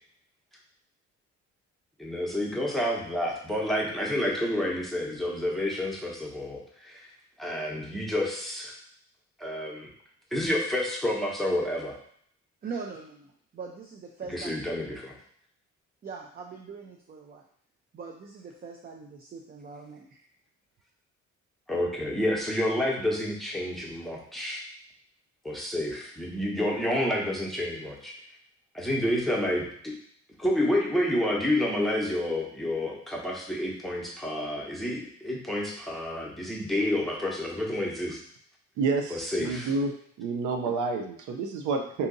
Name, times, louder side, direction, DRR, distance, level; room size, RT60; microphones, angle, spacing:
voice 1, 2.0-7.1 7.4-8.7 9.4-9.9 10.3-12.0 14.3-15.1 21.7-24.6 25.4-28.1 28.7-30.0 30.4-38.2 39.1-39.7, left 1 dB, ahead, -2 dB, 0.8 m, -29 dB
voice 2, 12.6-15.0 16.0-17.4 17.9-20.3, right 5 dB, 30° right, 1 dB, 0.4 m, -42 dB
voice 3, 38.8-39.9 40.2-42.1, right 4 dB, 80° right, 3 dB, 0.5 m, -29 dB
2.7 x 2.5 x 3.8 m, 0.63 s
cardioid pair, 90°, 30 cm